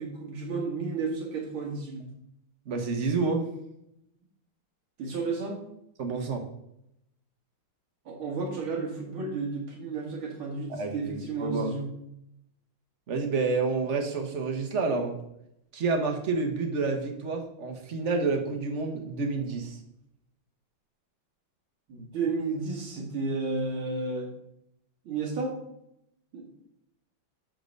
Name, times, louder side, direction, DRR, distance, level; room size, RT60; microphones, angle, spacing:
voice 1, 0.0-2.1 5.0-5.6 8.1-11.9 21.9-24.3 25.0-25.6 26.3-26.4, right 3 dB, 80° right, -1 dB, 2.8 m, -32 dB
voice 2, 2.7-3.4 6.0-6.4 10.7-11.7 13.1-15.1 15.7-19.8, right 4 dB, 40° right, 4 dB, 1.3 m, -29 dB
12.0 x 4.0 x 5.3 m, 0.79 s
omnidirectional pair, 2.3 m